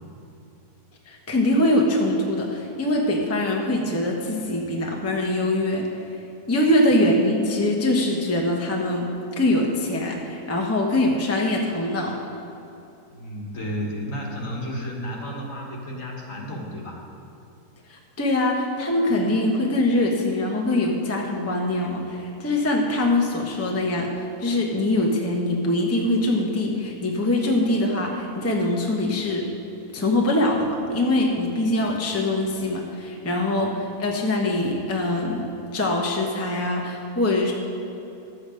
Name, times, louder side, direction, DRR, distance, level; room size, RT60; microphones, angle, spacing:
voice 1, 1.1-5.9 6.5-9.1 9.4-12.2 17.9-29.5 29.9-37.5, left 1 dB, 10° left, -1 dB, 0.8 m, -23 dB
voice 2, 13.1-17.0, equal, 55° left, -1 dB, 1.8 m, -32 dB
11.5 x 8.1 x 5.0 m, 2.8 s
omnidirectional pair, 1.7 m